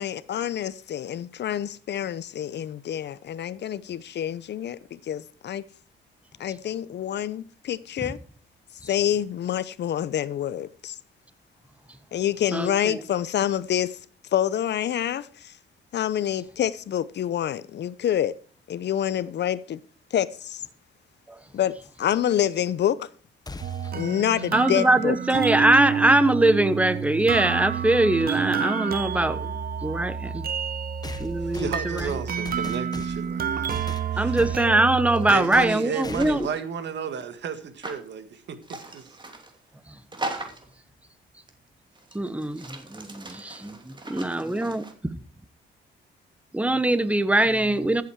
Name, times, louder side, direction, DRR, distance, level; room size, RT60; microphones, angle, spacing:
voice 1, 0.0-5.6 6.4-8.2 8.8-11.0 12.1-14.0 14.3-15.6 15.9-18.3 18.7-19.8 20.1-20.6 21.5-23.1 23.9-25.2, left 10 dB, 60° left, 0.8 m, -27 dB
voice 2, 12.5-13.0 24.5-30.5 31.2-32.1 34.2-36.5 42.1-43.7 44.1-45.1 46.5-48.0, right 1 dB, 5° right, 1.1 m, -22 dB
sound 1, 23.5-24.0 26.1-26.2 27.3-27.4 31.0-33.3 33.7-34.6 35.5-35.8 36.0-36.5, left 3 dB, 20° left, 1.3 m, -39 dB
sound 2, 23.6-35.3, right 7 dB, 50° right, 0.9 m, -29 dB
voice 3, 31.4-34.4 35.3-38.6 38.9-39.1, right 6 dB, 65° right, 1.9 m, -33 dB
sound 3, 35.1-36.6 37.8-38.0 38.6-39.6 40.1-40.7 41.5-41.6 42.0-44.9, right 2 dB, 25° right, 2.9 m, -39 dB
14.5 x 8.3 x 4.7 m
cardioid pair, 90°, 20 cm